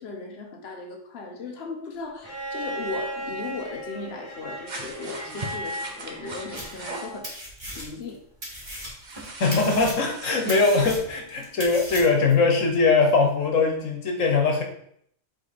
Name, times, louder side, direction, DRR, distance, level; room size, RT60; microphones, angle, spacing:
voice 1, 0.0-7.5 7.7-8.2 8.6-8.8, left 4 dB, 55° left, 1 dB, 1.3 m, -37 dB
Bowed string instrument, 2.2-7.3 8.7-8.8, right 1 dB, 15° left, 3.1 m, -36 dB
sound 1, 4.7-7.2 9.0-10.9, right 2 dB, 40° right, 1.0 m, -39 dB
sound 2, 6.5-7.0 7.2-8.1 8.4-12.3, equal, 20° right, 2.0 m, -37 dB
voice 2, 9.4-14.6, left 4 dB, 85° left, 3 dB, 1.5 m, -21 dB
7.9 x 3.6 x 4.3 m, 0.67 s
omnidirectional pair, 1.3 m